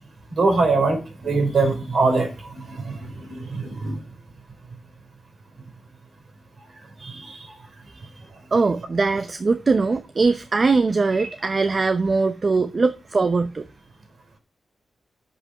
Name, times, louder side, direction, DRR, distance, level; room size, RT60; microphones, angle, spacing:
voice 1, 0.3-4.0 7.0-7.6, right 3 dB, 65° right, 4.0 m, -23 dB
voice 2, 7.9-8.2 8.5-13.7, right 4 dB, 45° right, 0.7 m, -21 dB
8.1 x 5.3 x 7.2 m
cardioid pair, 55°, 0 cm